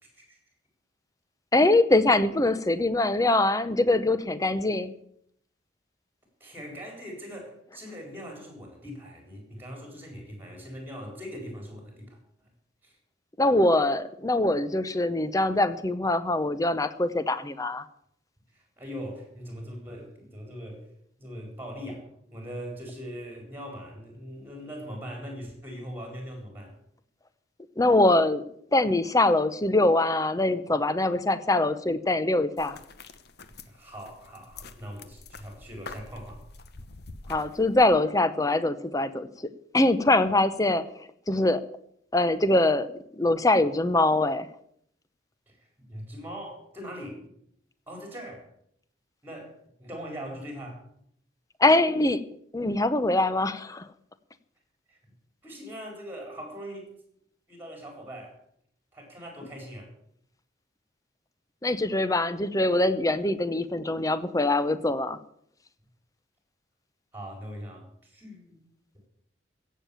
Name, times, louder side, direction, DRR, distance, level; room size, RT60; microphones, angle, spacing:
voice 1, 0.0-0.4 6.4-12.5 12.8-13.0 18.5-20.9 21.2-26.8 33.4-36.4 45.5-47.3 47.9-48.5 49.2-50.8 54.9-55.0 55.4-56.9 57.5-58.4 58.9-59.9 67.1-68.6, equal, 10° right, 2 dB, 4.3 m, -41 dB
voice 2, 1.5-4.9 13.4-17.8 27.8-28.5 28.7-32.8 37.3-40.9 41.3-41.6 42.1-44.5 51.6-52.2 52.5-53.9 61.6-65.2, left 2 dB, 20° left, 13 dB, 0.7 m, -23 dB
sound 1, 32.6-37.9, left 3 dB, 55° left, 1.0 m, -46 dB
16.0 x 7.5 x 7.1 m, 0.70 s
head